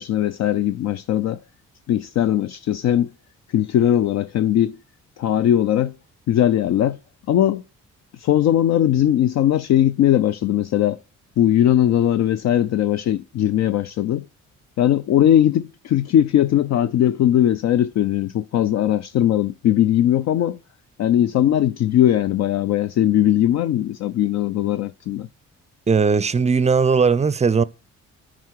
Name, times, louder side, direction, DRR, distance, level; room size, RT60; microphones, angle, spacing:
voice 1, 0.0-1.4 1.9-3.1 3.5-4.8 5.2-6.0 6.3-7.0 7.3-7.6 8.2-11.0 11.4-14.2 14.8-20.6 21.0-25.3, left 11 dB, 65° left, 0.5 m, -19 dB
voice 2, 25.9-27.6, right 5 dB, 20° right, 0.5 m, -18 dB
9.4 x 4.8 x 4.6 m
cardioid pair, 90°, 30 cm